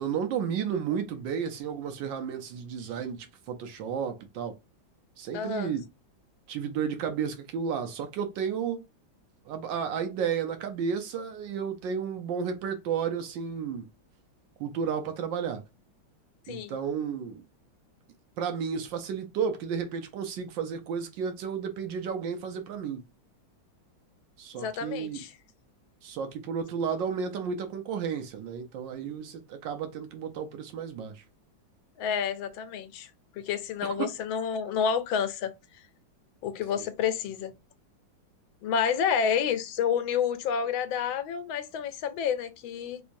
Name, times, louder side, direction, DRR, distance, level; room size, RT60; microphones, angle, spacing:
voice 1, 0.0-4.6 5.2-5.9 6.5-8.8 9.4-13.9 14.6-15.6 16.5-17.4 18.4-23.0 24.4-25.2 26.0-31.2 33.8-34.1, right 7 dB, 75° right, 1.3 m, -32 dB
voice 2, 5.3-5.7 16.5-16.7 24.5-25.3 32.0-35.8 36.4-37.5 38.6-43.0, left 7 dB, 85° left, 1.4 m, -29 dB
3.4 x 3.2 x 2.5 m
omnidirectional pair, 2.1 m